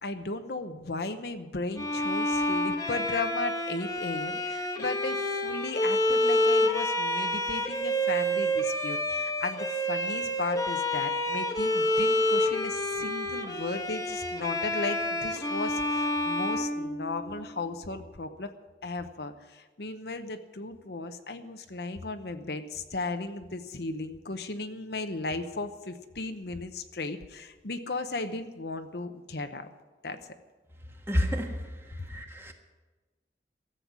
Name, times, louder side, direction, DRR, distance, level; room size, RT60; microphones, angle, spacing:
voice 1, 0.0-18.5 18.8-29.7 30.0-30.2, left 3 dB, 65° left, 8 dB, 0.9 m, -36 dB
Bowed string instrument, 1.8-17.5, left 1 dB, 20° left, 1.2 m, -28 dB
voice 2, 31.1-32.5, equal, 15° right, 3 dB, 1.5 m, -30 dB
14.0 x 7.8 x 9.5 m, 1.2 s
head